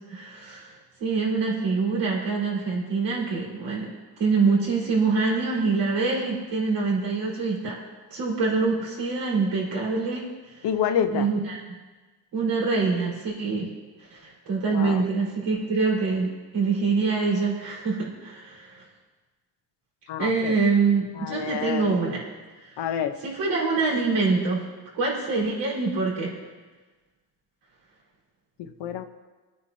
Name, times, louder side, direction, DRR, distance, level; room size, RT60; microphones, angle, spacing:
voice 1, 0.1-3.9 4.2-7.8 8.1-10.2 10.5-10.7 11.1-11.6 12.3-13.7 14.1-18.8 20.2-22.3 22.7-22.8 23.2-24.6 24.9-26.3, right 4 dB, 75° right, -5 dB, 4.9 m, -25 dB
voice 2, 10.6-11.3 14.7-15.0 20.1-20.6 21.2-21.9 22.8-23.1 28.6-29.0, left 8 dB, 80° left, 7 dB, 1.0 m, -28 dB
24.5 x 9.5 x 2.8 m, 1.3 s
cardioid pair, 110°, 41 cm